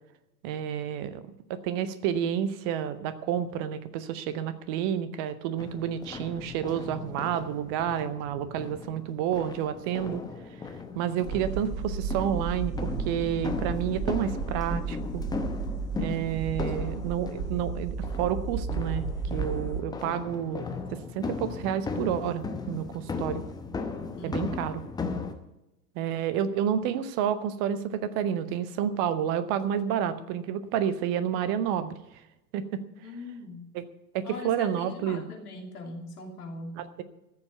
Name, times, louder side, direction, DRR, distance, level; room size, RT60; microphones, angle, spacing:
voice 1, 0.4-10.2 11.0-15.2 16.0-19.0 19.3-23.4 24.2-24.8 26.0-32.0 32.5-32.8 33.7-33.8 34.1-35.2 36.8-37.0, right 9 dB, 15° right, 14 dB, 0.4 m, -30 dB
sound 1, 5.6-25.3, left 4 dB, 10° left, 0.8 m, -37 dB
sound 2, 11.2-19.8, right 5 dB, 35° right, 0.9 m, -33 dB
voice 2, 16.7-17.1 24.2-24.6 33.0-33.7 34.2-36.8, left 3 dB, 65° left, 2 dB, 3.0 m, -40 dB
14.0 x 7.0 x 9.2 m, 0.94 s
figure-of-eight pair, 95°, 50 cm